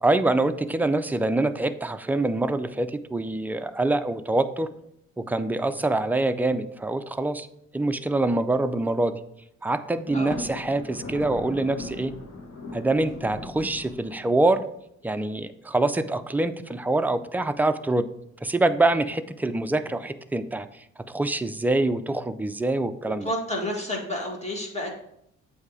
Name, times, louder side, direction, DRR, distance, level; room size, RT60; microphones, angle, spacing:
voice 1, 0.0-4.7 5.3-7.5 7.7-9.2 9.6-12.1 12.7-14.6 15.0-18.1 18.4-20.7 21.1-23.3, right 2 dB, 5° right, 9 dB, 0.3 m, -25 dB
Thunder, 10.1-14.6, left 2 dB, 55° left, 1.3 m, -39 dB
voice 2, 23.2-24.9, left 1 dB, 20° left, -1 dB, 1.9 m, -30 dB
8.2 x 2.8 x 4.8 m, 0.76 s
cardioid pair, 90°, 30 cm